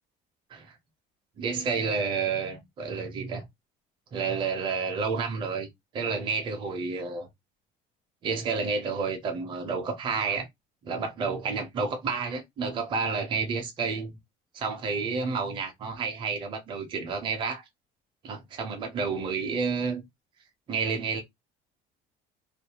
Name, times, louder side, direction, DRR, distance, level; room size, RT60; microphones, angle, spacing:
voice 1, 1.4-3.4 4.1-5.7 5.9-7.3 8.2-10.5 10.8-14.2 14.5-17.6 18.2-20.0 20.7-21.2, right 5 dB, 30° right, 0.5 m, -30 dB
2.4 x 2.1 x 2.8 m
cardioid pair, 180°, 17 cm